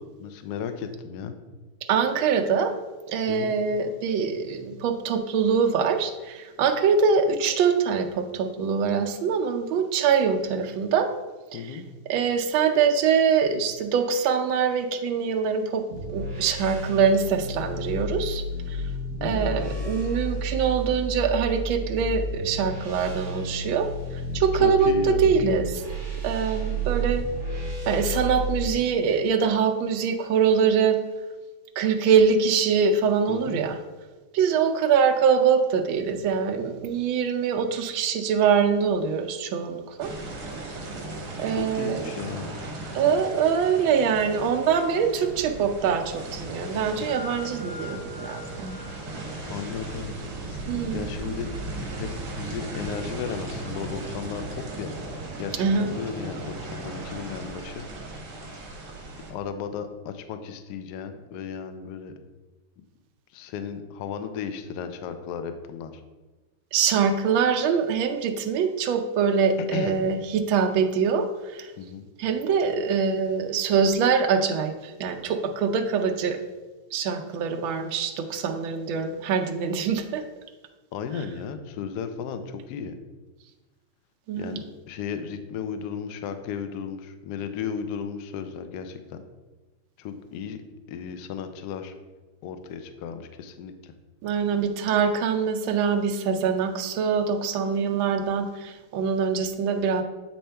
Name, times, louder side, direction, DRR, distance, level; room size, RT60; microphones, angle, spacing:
voice 1, 0.0-1.3 3.3-3.6 11.5-11.9 19.2-20.3 24.6-25.4 33.3-33.6 41.5-42.6 49.5-50.2 50.5-50.6 50.9-51.5 51.9-52.1 52.3-55.0 55.4-57.9 59.3-62.1 63.3-66.0 69.7-69.9 71.8-72.1 80.9-82.9 84.3-89.2 90.0-90.6 90.9-91.9 92.4-93.9, left 7 dB, 75° left, 8 dB, 0.9 m, -35 dB
voice 2, 1.9-2.7 3.1-11.1 11.5-11.8 12.1-15.8 16.1-18.8 19.2-23.9 24.3-25.8 26.2-27.3 27.9-31.0 31.8-33.8 34.3-40.1 41.4-42.1 42.9-48.8 50.7-51.0 55.5-55.9 66.7-71.7 72.2-76.4 76.9-80.2 84.3-84.6 94.2-100.0, right 6 dB, 75° right, 6 dB, 1.4 m, -24 dB
sound 1, 15.9-28.7, right 1 dB, 40° right, 1.6 m, -31 dB
sound 2, 40.0-59.3, right 2 dB, 60° right, 1.8 m, -37 dB
sound 3, 47.1-54.9, left 1 dB, 50° left, 2.6 m, -46 dB
8.5 x 4.3 x 3.4 m, 1.2 s
omnidirectional pair, 2.3 m